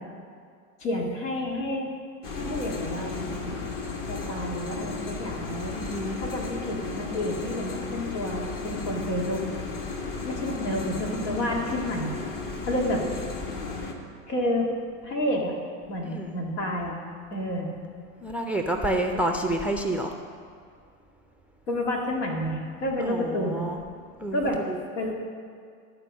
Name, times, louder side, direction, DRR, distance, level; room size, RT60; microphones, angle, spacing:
voice 1, 0.8-1.9 2.4-3.6 4.1-5.7 6.2-9.4 10.2-12.1 12.7-13.0 14.3-14.7 15.0-15.5 15.9-17.0 17.3-17.7 21.7-23.6 24.3-24.6 25.0-25.1, left 1 dB, 85° left, -1 dB, 2.1 m, -29 dB
sound 1, 2.2-13.9, left 4 dB, 45° left, 1.4 m, -34 dB
voice 2, 5.7-6.2 16.0-16.4 18.2-20.1 23.0-23.8 24.2-24.4 24.7-24.8, right 1 dB, 5° right, 4 dB, 0.3 m, -29 dB
12.5 x 4.5 x 7.3 m, 2.2 s
supercardioid pair, 110°, 46 cm